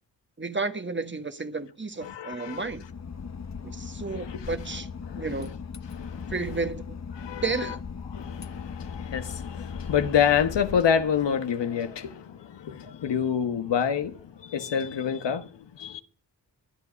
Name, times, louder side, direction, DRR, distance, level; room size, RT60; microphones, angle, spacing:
voice 1, 0.4-2.8 3.6-4.9 5.2-5.5 6.3-7.0 7.4-7.8, right 3 dB, 25° right, 1.5 m, -32 dB
voice 2, 2.0-2.7 4.1-4.4 5.0-5.6 5.9-6.4 7.2-7.7 8.1-16.0, left 8 dB, 75° left, 1.5 m, -28 dB
Boat Water vehicle / Engine, 2.6-11.5, left 6 dB, 40° left, 1.2 m, -38 dB
23.5 x 8.4 x 5.3 m
cardioid pair, 70°, 43 cm